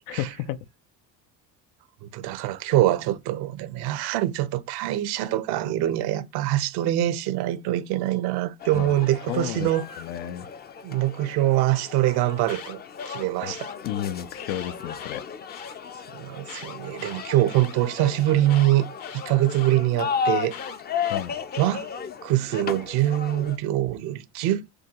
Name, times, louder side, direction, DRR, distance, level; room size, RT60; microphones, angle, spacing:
voice 1, 0.1-0.6 8.7-9.0 9.3-9.7 10.0-10.5 13.4-13.5 13.9-15.2 21.1-21.4, left 12 dB, 80° left, 0.7 m, -32 dB
voice 2, 2.0-9.9 10.8-13.7 16.1-18.8 19.1-20.6 21.6-21.9 22.2-24.6, right 14 dB, 75° right, 0.9 m, -24 dB
sound 1, 8.6-23.6, left 6 dB, 25° left, 0.5 m, -35 dB
Alarm, 12.3-13.7 14.4-15.7 16.4-17.7 18.5-19.8 20.5-21.8, left 9 dB, 60° left, 1.1 m, -42 dB
6.5 x 2.3 x 2.9 m
cardioid pair, 110°, 39 cm